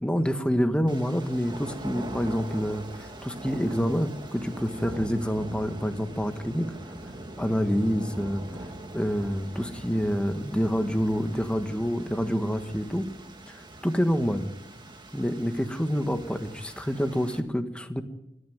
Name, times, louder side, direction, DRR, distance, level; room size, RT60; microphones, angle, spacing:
voice 1, 0.0-6.7 7.4-8.4 8.9-13.1 13.5-13.6 13.8-14.5 15.1-18.0, equal, 5° left, 7 dB, 1.5 m, -27 dB
sound 1, 0.9-17.4, right 1 dB, 25° right, 2.0 m, -42 dB
25.5 x 14.5 x 9.5 m, 0.90 s
head